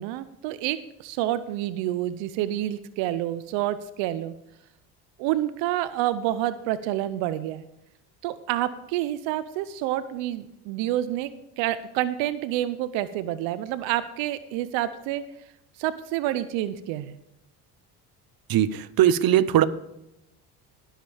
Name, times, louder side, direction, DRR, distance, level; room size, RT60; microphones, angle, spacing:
voice 1, 0.0-4.3 5.2-7.6 8.2-11.3 11.6-15.2 15.8-17.2, right 13 dB, 80° right, 14 dB, 0.8 m, -28 dB
voice 2, 18.5-19.7, right 11 dB, 50° right, 15 dB, 0.9 m, -20 dB
19.0 x 7.4 x 3.5 m, 0.85 s
supercardioid pair, 85°, 44 cm